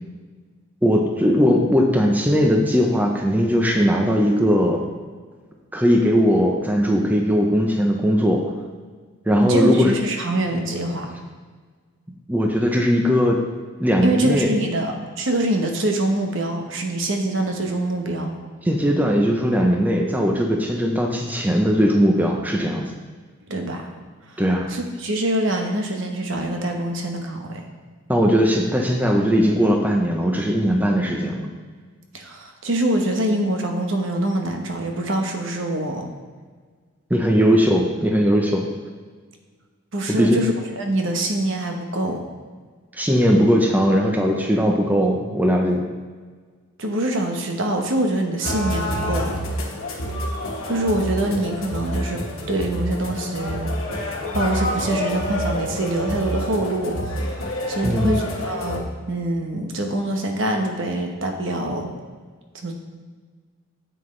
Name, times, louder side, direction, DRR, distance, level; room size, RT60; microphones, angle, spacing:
voice 1, 0.8-4.9 5.7-8.5 9.3-10.0 12.3-13.4 13.8-14.5 18.6-22.9 24.4-24.7 28.1-31.4 37.1-38.7 40.1-40.5 42.9-45.8 57.8-58.2, equal, 10° right, 1 dB, 0.7 m, -19 dB
voice 2, 9.4-11.1 14.0-18.3 23.5-23.9 24.3-24.4 24.7-27.6 32.1-36.1 39.9-42.2 46.8-49.4 50.7-53.7 54.3-61.9 62.6-62.7, right 1 dB, 60° right, 3 dB, 1.0 m, -24 dB
sound 1, 48.4-58.8, equal, 65° left, 1.4 m, -27 dB
9.2 x 7.9 x 3.3 m, 1.5 s
head